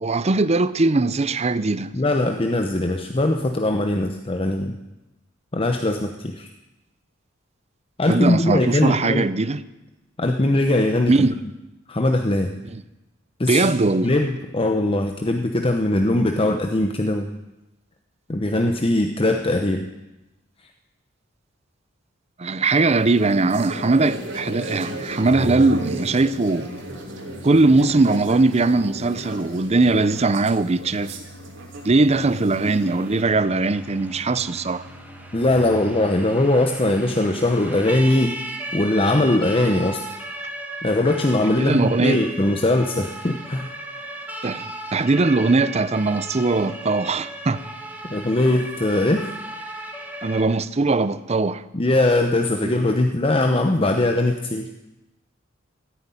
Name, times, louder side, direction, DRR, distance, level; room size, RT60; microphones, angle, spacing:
voice 1, 0.0-1.9 8.1-9.6 11.1-11.3 12.7-12.8 13.5-14.1 22.4-26.7 27.4-31.1 31.8-34.8 41.6-42.2 44.4-44.7 44.9-47.6 50.2-51.6 52.6-52.7, right 3 dB, 35° right, 0.6 m, -20 dB
voice 2, 1.9-4.8 5.5-6.5 8.0-9.2 10.2-11.1 11.9-12.5 13.4-13.7 14.0-17.3 18.3-19.9 35.3-38.4 38.7-40.0 40.8-43.7 48.1-49.3 51.7-54.7, left 1 dB, 30° left, 0.8 m, -21 dB
sound 1, 22.7-33.2, right 1 dB, 70° right, 3.0 m, -35 dB
Organ, 25.2-36.2, right 1 dB, 75° left, 3.4 m, -41 dB
Siren, 32.7-50.4, right 1 dB, 10° right, 1.8 m, -36 dB
14.5 x 9.7 x 9.2 m
head